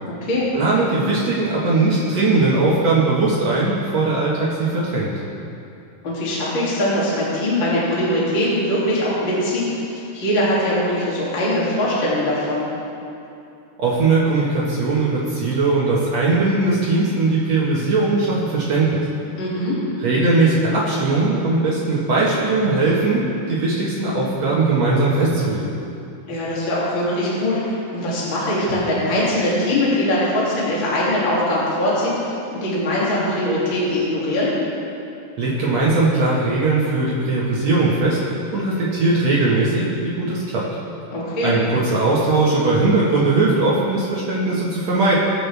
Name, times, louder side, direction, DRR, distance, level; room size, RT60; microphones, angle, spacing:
voice 1, 0.0-0.5 6.0-12.7 19.4-19.8 26.3-34.5 41.1-41.5, left 1 dB, 30° left, -8 dB, 2.5 m, -21 dB
voice 2, 0.5-5.1 13.8-19.0 20.0-25.6 35.4-38.2 38.5-40.6 41.4-45.1, right 3 dB, 80° right, -6 dB, 1.5 m, -19 dB
22.5 x 8.5 x 3.5 m, 2.7 s
omnidirectional pair, 5.5 m